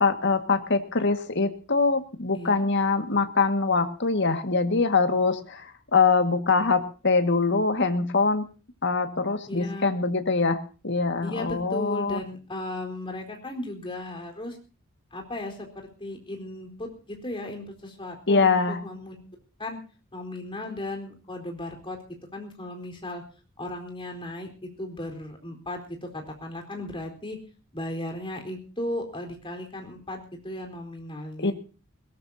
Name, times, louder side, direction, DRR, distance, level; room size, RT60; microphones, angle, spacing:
voice 1, 0.0-8.5 8.8-12.2 18.3-18.8 31.4-31.5, left 4 dB, 55° left, 8 dB, 1.9 m, -23 dB
voice 2, 2.3-2.6 9.5-9.9 11.2-14.6 15.1-19.2 19.6-19.8 20.1-22.0 22.3-23.2 23.6-24.5 24.8-27.4 27.7-31.5, left 1 dB, 25° left, 3 dB, 4.2 m, -36 dB
21.5 x 18.5 x 2.8 m, 0.35 s
head